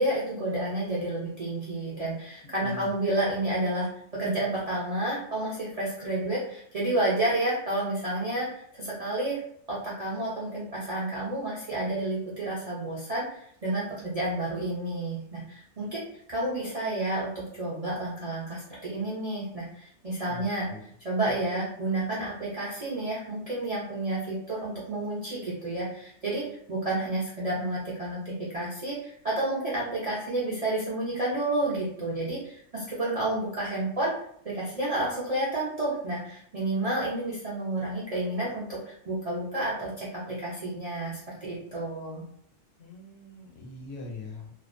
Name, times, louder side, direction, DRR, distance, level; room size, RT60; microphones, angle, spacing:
voice 1, 0.0-9.4 9.7-16.0 16.3-20.7 21.0-34.1 34.4-42.2, right 1 dB, 65° right, -7 dB, 0.3 m, -30 dB
voice 2, 2.6-2.9 20.3-20.8 42.8-44.5, left 2 dB, 70° left, 0 dB, 0.9 m, -42 dB
2.4 x 2.1 x 2.4 m, 0.65 s
omnidirectional pair, 1.4 m